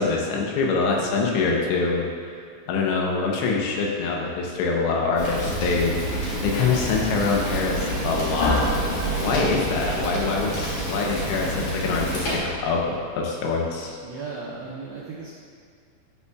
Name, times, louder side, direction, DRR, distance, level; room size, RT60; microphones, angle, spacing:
voice 1, 0.0-2.1 2.7-8.7 9.0-14.0, left 4 dB, 90° left, -1 dB, 3.3 m, -25 dB
Fire, 5.2-12.4, right 1 dB, 55° left, 2.7 m, -28 dB
sound 1, 8.4-13.1, left 1 dB, 75° left, 2.8 m, -31 dB
voice 2, 14.0-15.3, right 4 dB, 85° right, -6 dB, 1.9 m, -36 dB
12.5 x 5.5 x 2.4 m, 2.2 s
omnidirectional pair, 5.2 m